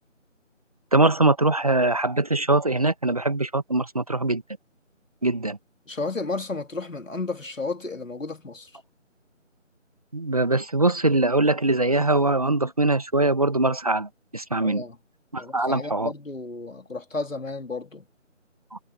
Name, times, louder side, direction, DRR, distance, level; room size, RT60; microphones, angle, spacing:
voice 1, 0.9-4.4 5.2-5.6 10.1-14.8 15.3-16.1 18.7-18.8, right 2 dB, 30° right, 1.2 m, -22 dB
voice 2, 5.9-8.7 14.6-15.0 15.4-18.0, left 3 dB, 85° left, 2.7 m, -32 dB
figure-of-eight pair, 165°, 38 cm